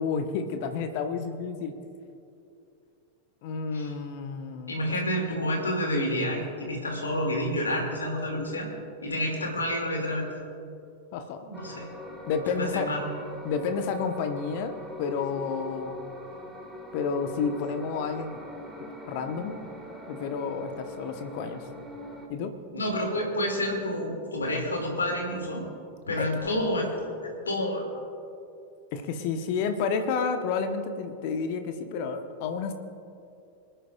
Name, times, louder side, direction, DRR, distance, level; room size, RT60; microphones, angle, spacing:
voice 1, 0.0-1.7 3.4-4.7 11.1-11.4 12.3-12.9 13.4-14.7 15.0-16.0 16.9-18.4 19.1-19.5 20.1-21.7 22.3-22.5 26.2-26.3 28.9-32.7, left 5 dB, 50° left, 7 dB, 1.0 m, -30 dB
voice 2, 4.7-8.7 9.0-10.4 11.4-11.9 12.5-13.0 22.7-25.6 26.1-27.8, left 1 dB, 75° left, 1 dB, 2.3 m, -29 dB
sound 1, 11.5-22.3, left 1 dB, 5° right, 1.7 m, -42 dB
26.0 x 10.0 x 2.4 m, 2.6 s
figure-of-eight pair, 90°, 0 cm